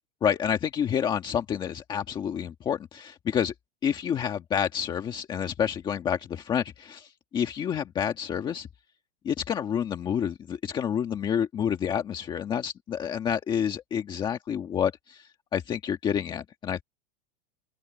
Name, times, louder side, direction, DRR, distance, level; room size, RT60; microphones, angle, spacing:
voice 1, 0.2-3.5 3.8-8.7 9.2-16.8, left 8 dB, 15° left, 1.6 m, -29 dB
open air
supercardioid pair, 175°, 29 cm